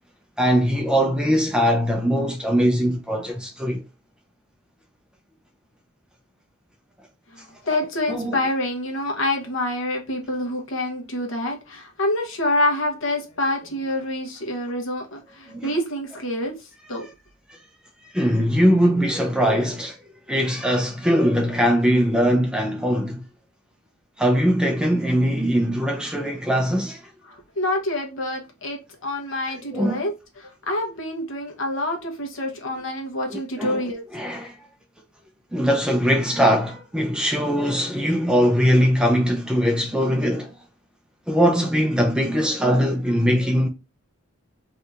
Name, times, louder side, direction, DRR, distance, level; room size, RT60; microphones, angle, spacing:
voice 1, 0.4-3.8 8.1-8.4 15.5-15.7 17.5-17.6 18.1-20.0 20.3-23.2 24.2-27.0 29.7-30.0 33.3-33.8 34.1-34.5 35.5-40.6 41.3-43.7, equal, 5° right, 0.4 m, -21 dB
voice 2, 7.3-17.1 27.3-30.1 30.4-34.0, left 1 dB, 65° left, 0.9 m, -27 dB
2.8 x 2.4 x 3.3 m
head